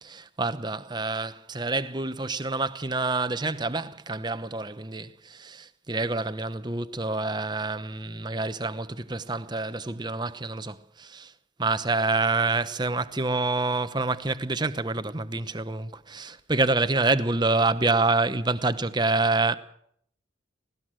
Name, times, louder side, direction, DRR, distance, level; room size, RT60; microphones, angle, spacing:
voice 1, 0.0-11.3 11.6-19.5, right 3 dB, 20° right, 0.9 m, -27 dB
19.0 x 18.0 x 7.6 m
head